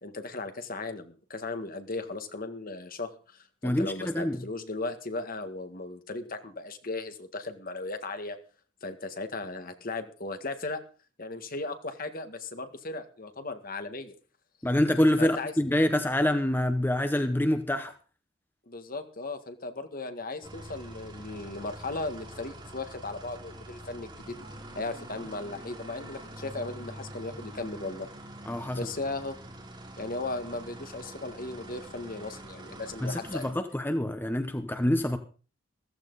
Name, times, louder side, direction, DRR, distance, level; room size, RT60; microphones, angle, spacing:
voice 1, 0.0-8.4 8.8-10.8 11.2-14.1 15.2-15.5 18.7-24.4 24.7-28.1 28.7-29.4 30.0-33.6, left 2 dB, 50° left, 8 dB, 1.8 m, -37 dB
voice 2, 3.6-4.4 14.6-17.9 28.5-28.8 33.0-35.2, left 1 dB, 10° left, 8 dB, 0.9 m, -26 dB
sound 1, 20.4-33.5, right 1 dB, 25° right, 3.4 m, -45 dB
15.0 x 14.5 x 4.0 m, 0.38 s
head